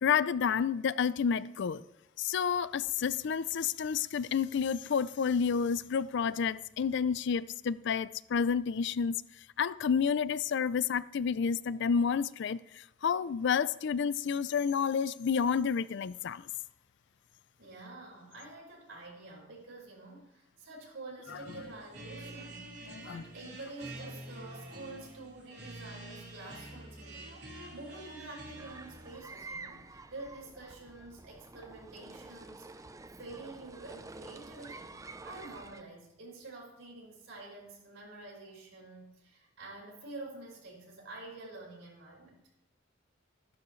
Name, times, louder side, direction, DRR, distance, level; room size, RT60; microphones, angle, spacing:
voice 1, 0.0-1.8 2.2-9.2 9.6-12.6 13.0-16.4 23.1-23.2, left 6 dB, 65° left, 0.4 m, -30 dB
voice 2, 17.6-32.9 33.2-35.0 35.2-42.5, right 2 dB, 80° right, 4.9 m, -48 dB
sound 1, 21.2-29.2, right 1 dB, 60° right, 3.4 m, -47 dB
sound 2, 28.6-35.8, right 3 dB, 15° right, 0.5 m, -49 dB
14.5 x 11.5 x 3.2 m
head